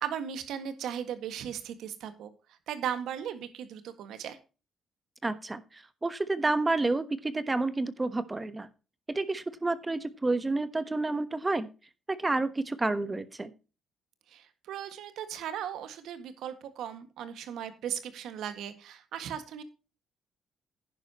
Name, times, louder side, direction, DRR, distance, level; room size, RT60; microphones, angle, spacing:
voice 1, 0.0-2.3 2.7-4.4 14.3-19.6, right 9 dB, 80° right, 10 dB, 1.8 m, -37 dB
voice 2, 5.2-8.7 9.1-11.7 12.1-13.5, right 2 dB, 20° right, 13 dB, 1.1 m, -30 dB
10.5 x 10.5 x 3.0 m, 0.32 s
cardioid pair, 90°, 0 cm